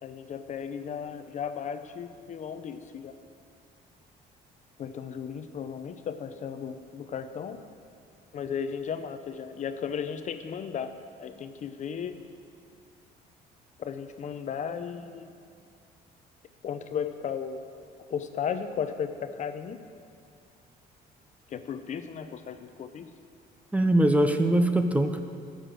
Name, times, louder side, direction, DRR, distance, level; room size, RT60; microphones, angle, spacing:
voice 1, 0.0-3.2 4.8-7.6 8.3-12.2 13.8-15.3 16.6-17.6 18.1-19.8 21.5-23.1, left 7 dB, 45° left, 9 dB, 0.6 m, -35 dB
voice 2, 23.7-25.2, right 1 dB, 10° right, 7 dB, 0.6 m, -22 dB
12.0 x 6.4 x 7.7 m, 2.3 s
cardioid pair, 110°, 17 cm